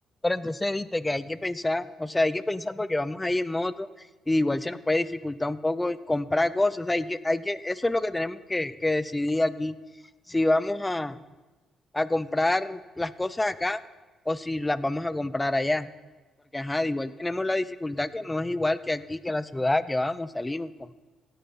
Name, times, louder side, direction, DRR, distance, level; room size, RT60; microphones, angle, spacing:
voice 1, 0.2-3.9 4.3-9.8 10.3-11.2 11.9-13.8 14.3-15.9 16.5-20.7, left 2 dB, 15° left, 16 dB, 0.5 m, -27 dB
16.5 x 9.3 x 4.2 m, 1.2 s
cardioid pair, 90°, 0 cm